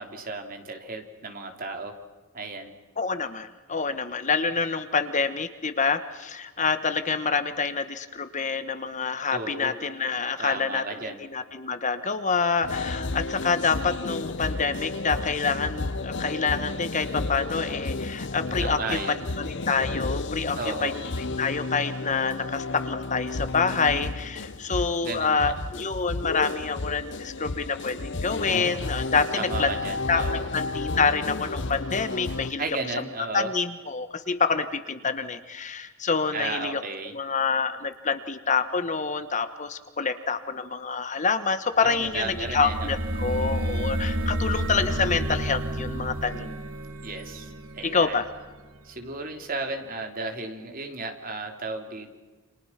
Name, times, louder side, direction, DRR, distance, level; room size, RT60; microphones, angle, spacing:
voice 1, 0.0-2.0 2.3-2.7 9.3-9.8 10.4-11.2 18.6-19.2 20.6-20.9 25.0-25.5 29.3-30.5 32.6-33.5 36.3-37.1 41.8-42.9 47.0-48.2 48.8-52.1, right 3 dB, 40° right, 5 dB, 3.2 m, -34 dB
voice 2, 3.0-18.8 19.4-20.9 21.4-29.7 30.1-32.6 33.3-36.8 37.1-46.5 47.9-48.2, left 5 dB, 35° left, 11 dB, 1.3 m, -27 dB
sound 1, 12.6-32.5, left 3 dB, 55° left, 1.0 m, -32 dB
sound 2, 41.9-48.7, right 1 dB, 75° right, 3.1 m, -30 dB
29.5 x 27.0 x 5.9 m, 1.3 s
head